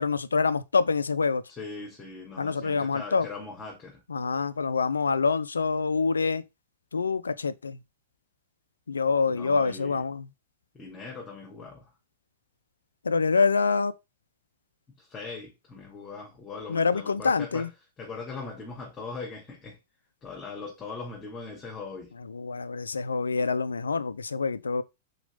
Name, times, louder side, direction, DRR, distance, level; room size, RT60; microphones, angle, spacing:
voice 1, 0.0-1.4 2.4-3.3 4.1-6.4 6.9-7.8 8.9-10.3 13.0-13.9 16.7-17.7 22.3-24.8, left 4 dB, 85° left, 0.5 m, -26 dB
voice 2, 1.5-4.0 9.3-10.0 10.7-11.9 15.0-17.7 18.0-19.8 20.2-22.1, left 4 dB, 20° left, 2.4 m, -40 dB
5.1 x 4.1 x 5.1 m
figure-of-eight pair, 100°, 0 cm